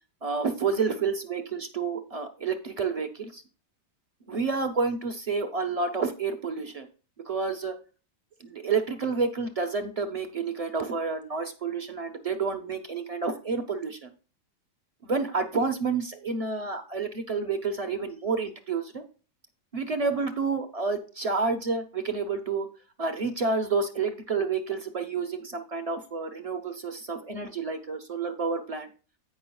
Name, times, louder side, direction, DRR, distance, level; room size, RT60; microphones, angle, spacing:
voice 1, 0.2-3.4 4.3-6.9 7.2-7.7 8.4-14.1 15.0-19.0 19.7-22.7 23.0-28.9, right 4 dB, 25° right, 7 dB, 1.0 m, -29 dB
16.0 x 5.5 x 2.3 m, 0.35 s
omnidirectional pair, 1.9 m